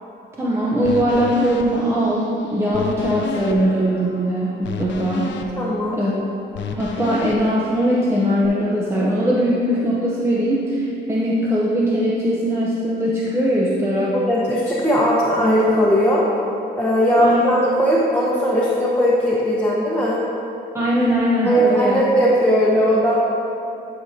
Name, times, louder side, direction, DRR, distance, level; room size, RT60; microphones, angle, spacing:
voice 1, 0.4-5.4 5.9-6.1 6.8-14.2 17.2-17.4 20.7-22.0, equal, 10° right, -6 dB, 0.8 m, -20 dB
sound 1, 0.8-8.5, left 5 dB, 70° left, 0.6 m, -33 dB
voice 2, 5.6-6.0 14.1-16.2 16.8-20.2 21.4-23.2, equal, 10° left, -7 dB, 1.1 m, -18 dB
11.0 x 4.8 x 2.8 m, 2.7 s
cardioid pair, 90°, 20 cm